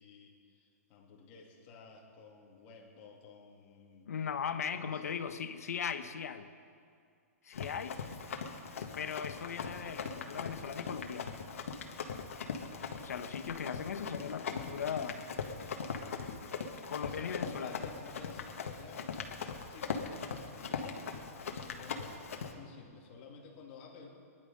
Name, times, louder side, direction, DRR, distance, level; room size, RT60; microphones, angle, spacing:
voice 1, 0.0-4.1 4.7-5.2 17.0-19.1 19.7-24.1, left 5 dB, 25° left, -1 dB, 2.2 m, -53 dB
voice 2, 4.1-6.5 7.4-8.0 8.9-11.3 13.0-15.2 16.9-17.7, left 7 dB, 90° left, 9 dB, 1.2 m, -38 dB
Run, 7.5-22.5, left 5 dB, 65° left, 1.7 m, -40 dB
22.5 x 11.0 x 5.4 m, 2.3 s
hypercardioid pair, 175°, 8 cm